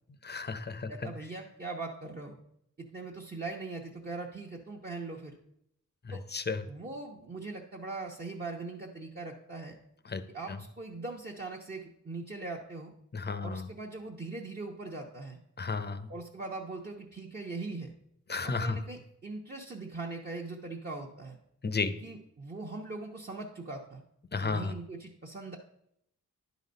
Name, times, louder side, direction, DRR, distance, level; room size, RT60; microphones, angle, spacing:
voice 1, 0.2-0.9 6.0-6.6 10.1-10.2 10.5-10.6 13.1-13.7 15.6-16.1 18.3-18.8 21.6-21.9 24.3-24.7, left 4 dB, 30° left, 12 dB, 0.6 m, -33 dB
voice 2, 0.9-2.4 2.8-5.3 6.1-6.2 6.7-9.8 10.3-12.9 13.4-15.4 16.1-17.9 18.4-21.4 22.0-24.0 24.4-25.6, right 3 dB, 30° right, -2 dB, 0.9 m, -41 dB
10.0 x 4.1 x 5.2 m, 0.75 s
wide cardioid pair, 85°, 32 cm